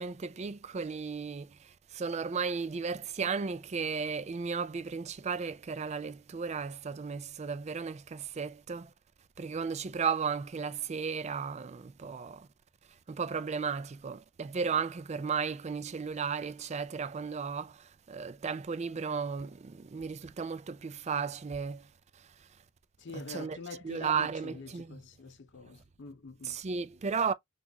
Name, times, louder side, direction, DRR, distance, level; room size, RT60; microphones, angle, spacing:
voice 1, 0.0-8.9 9.4-12.5 13.1-22.5 23.1-23.6 23.8-25.0 26.4-27.3, right 5 dB, 30° right, 0.4 m, -35 dB
voice 2, 23.0-26.6, left 4 dB, 55° left, 0.5 m, -45 dB
6.0 x 2.4 x 2.8 m
head